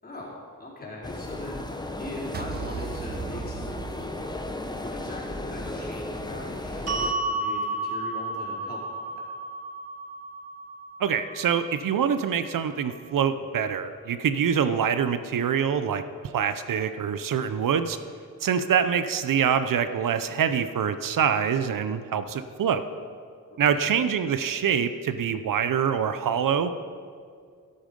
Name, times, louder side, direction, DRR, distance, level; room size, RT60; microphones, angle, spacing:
voice 1, 0.0-8.8 23.6-23.9, left 2 dB, 30° left, -5 dB, 4.5 m, -40 dB
sound 1, 1.0-7.1, left 1 dB, 15° left, 1.0 m, -35 dB
sound 2, 2.3-4.7, right 7 dB, 30° right, 0.4 m, -37 dB
sound 3, 6.9-13.1, right 2 dB, 50° right, 2.1 m, -33 dB
voice 2, 11.0-16.0 16.3-18.0 18.4-22.8 23.6-26.7, right 7 dB, 80° right, 11 dB, 0.7 m, -25 dB
13.0 x 12.5 x 5.3 m, 2.2 s
wide cardioid pair, 100°, 32 cm